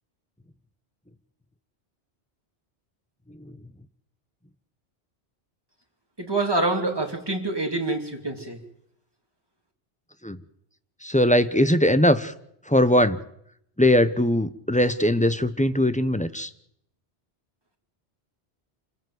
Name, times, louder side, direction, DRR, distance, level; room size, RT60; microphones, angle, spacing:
voice 1, 6.2-8.6, right 2 dB, 20° right, 3 dB, 3.0 m, -26 dB
voice 2, 11.0-12.3 12.7-13.2 13.8-16.5, left 1 dB, 10° left, 12 dB, 0.8 m, -20 dB
27.0 x 15.5 x 7.9 m, 0.74 s
omnidirectional pair, 1.1 m